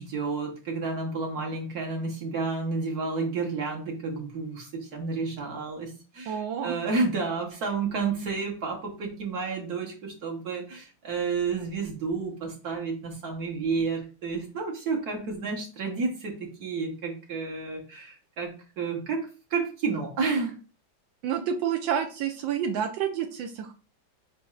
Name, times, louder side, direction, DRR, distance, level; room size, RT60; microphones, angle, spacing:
voice 1, 0.0-20.5, right 4 dB, 55° right, 0 dB, 1.4 m, -31 dB
voice 2, 6.3-6.8 21.2-23.7, right 8 dB, 80° right, 6 dB, 1.3 m, -29 dB
5.1 x 4.3 x 2.4 m, 0.36 s
omnidirectional pair, 2.1 m